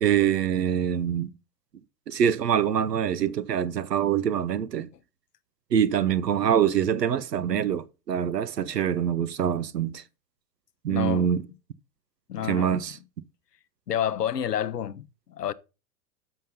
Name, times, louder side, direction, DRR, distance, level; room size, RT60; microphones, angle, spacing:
voice 1, 0.0-1.3 2.1-4.9 5.7-10.0 10.8-11.4 12.4-13.0, right 9 dB, 90° right, 0.6 m, -24 dB
voice 2, 10.9-11.3 12.3-12.8 13.9-15.5, left 9 dB, 85° left, 0.7 m, -29 dB
7.1 x 5.7 x 5.4 m
figure-of-eight pair, 95°, 47 cm